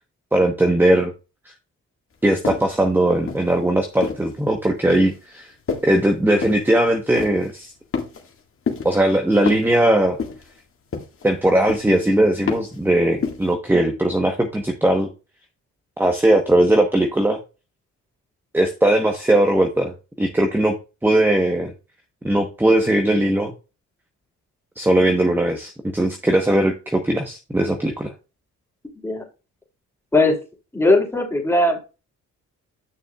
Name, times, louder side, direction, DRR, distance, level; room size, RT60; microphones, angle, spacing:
voice 1, 0.3-1.1 1.4-1.5 2.2-5.5 5.8-7.7 8.8-10.2 11.2-15.1 16.0-17.4 18.5-20.8 21.0-21.7 22.2-23.5 24.8-28.1, right 1 dB, 5° right, 4 dB, 1.1 m, -19 dB
sound 1, 2.4-2.8 3.3-4.3 4.9-5.2 5.7-6.0 6.4-6.7 7.1-7.5 7.9-8.4 8.7-9.0 9.5-9.8 10.2-10.6 10.9-11.3 11.7-12.0 12.5-12.8 13.2-13.5, left 5 dB, 45° left, 1.9 m, -29 dB
voice 2, 30.7-31.8, left 2 dB, 10° left, 0 dB, 3.0 m, -18 dB
9.8 x 6.2 x 2.4 m, 0.30 s
cardioid pair, 90°, 30 cm